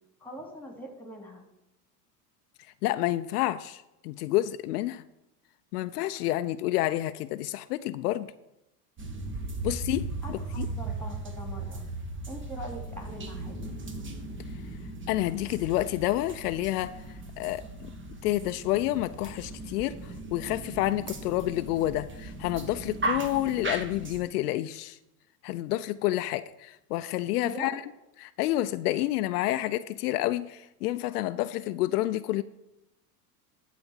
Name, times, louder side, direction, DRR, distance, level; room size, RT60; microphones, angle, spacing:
voice 1, 0.2-1.4 10.2-11.8 12.3-13.7 27.4-27.7, equal, 5° left, 2 dB, 3.1 m, -42 dB
voice 2, 2.8-5.0 5.7-8.3 9.6-10.7 15.1-16.9 17.4-17.9 18.2-25.0 25.4-27.8 28.2-32.4, left 15 dB, 75° left, 12 dB, 0.6 m, -29 dB
sound 1, 9.0-24.2, right 2 dB, 25° right, 1.6 m, -37 dB
12.0 x 4.1 x 7.3 m, 0.90 s
hypercardioid pair, 85°, 46 cm